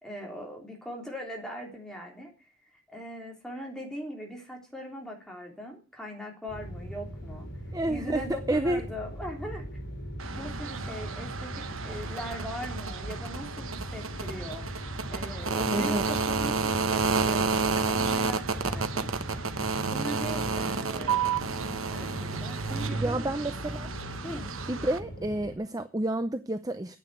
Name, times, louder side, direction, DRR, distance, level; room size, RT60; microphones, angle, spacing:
voice 1, 0.0-2.3 2.9-7.5 7.9-9.7 10.3-19.6 19.9-23.3 24.2-24.5, equal, 5° left, 0 dB, 3.4 m, -40 dB
sound 1, 6.5-25.6, equal, 55° left, 6.0 m, -40 dB
voice 2, 7.7-8.8 15.7-16.0 23.0-23.9 24.7-27.0, right 1 dB, 15° right, 9 dB, 0.6 m, -29 dB
sound 2, 10.2-25.0, right 4 dB, 70° right, 1.2 m, -31 dB
9.8 x 8.9 x 8.1 m, 0.35 s
head